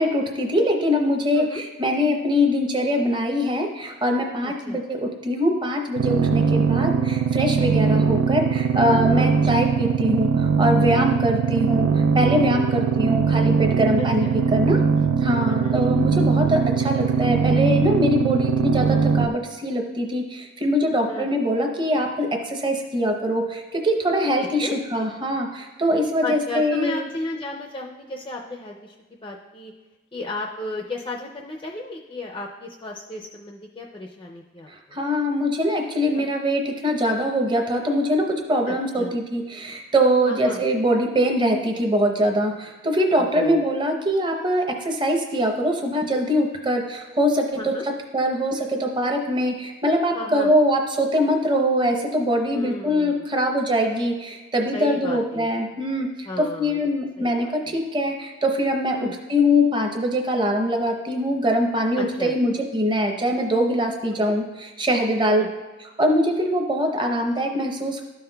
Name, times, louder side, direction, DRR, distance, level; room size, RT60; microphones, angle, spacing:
voice 1, 0.0-14.8 15.2-27.0 34.7-65.4 65.8-68.0, equal, 25° right, 3 dB, 0.7 m, -23 dB
voice 2, 4.4-4.8 7.9-8.0 9.1-9.3 11.1-11.2 12.7-12.8 14.0-14.3 15.5-15.8 20.9-21.3 24.6-24.7 26.2-29.0 29.2-29.7 30.1-34.7 36.1-36.3 38.7-39.2 40.3-40.6 43.2-43.6 47.6-47.8 50.1-50.5 52.5-53.3 54.7-55.5 56.3-56.9 57.2-57.8 58.9-59.1 62.0-62.3 64.1-64.3 65.2-65.5, left 2 dB, 25° left, 0 dB, 0.4 m, -34 dB
sound 1, 6.0-19.3, right 6 dB, 85° right, 0.3 m, -21 dB
12.5 x 5.6 x 2.2 m, 1.3 s
head